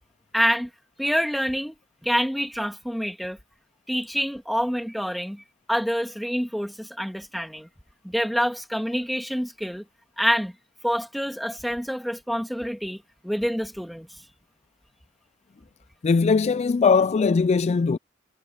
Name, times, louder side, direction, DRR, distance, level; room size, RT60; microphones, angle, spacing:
voice 1, 0.3-0.7 1.0-1.7 2.0-3.4 3.9-5.4 5.7-7.7 8.0-9.8 10.2-10.5 10.8-14.1, equal, ahead, 2.3 m, -27 dB
voice 2, 16.0-18.0, left 5 dB, 35° left, 0.3 m, -20 dB
head